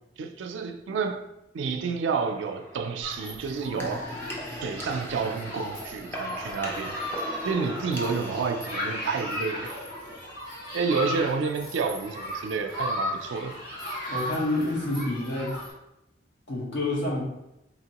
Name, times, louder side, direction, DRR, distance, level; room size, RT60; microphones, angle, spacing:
voice 1, 0.2-1.2 1.5-4.1 4.6-7.0 7.4-9.7 10.7-13.6, right 5 dB, 80° right, 5 dB, 0.3 m, -29 dB
sound 1, 2.2-10.0, equal, 10° left, 0.5 m, -40 dB
Human group actions, 3.0-15.7, left 1 dB, 50° left, 1.1 m, -36 dB
voice 2, 14.1-15.5 16.5-17.2, left 2 dB, 75° left, -5 dB, 1.2 m, -28 dB
4.0 x 2.9 x 2.9 m, 0.89 s
head